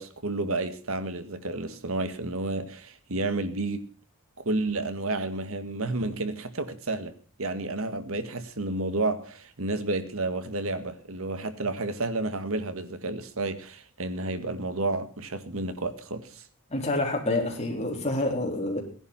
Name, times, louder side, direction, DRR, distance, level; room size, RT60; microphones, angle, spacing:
voice 1, 0.0-3.9 4.4-16.5, right 2 dB, 70° right, 1.8 m, -31 dB
voice 2, 16.7-18.8, left 2 dB, 30° left, 4.0 m, -27 dB
17.0 x 11.0 x 5.8 m
head